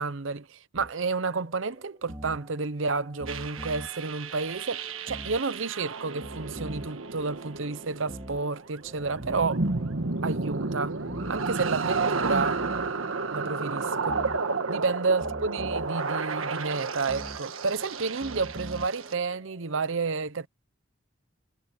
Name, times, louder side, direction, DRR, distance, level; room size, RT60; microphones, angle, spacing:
voice 1, 0.0-9.6 10.2-11.0 11.3-12.6 13.3-14.2 14.7-20.5, right 4 dB, 70° right, 0.8 m, -30 dB
sound 1, 0.7-19.8, right 1 dB, 20° right, 2.5 m, -45 dB
sound 2, 3.3-19.1, right 4 dB, 90° right, 1.5 m, -32 dB
head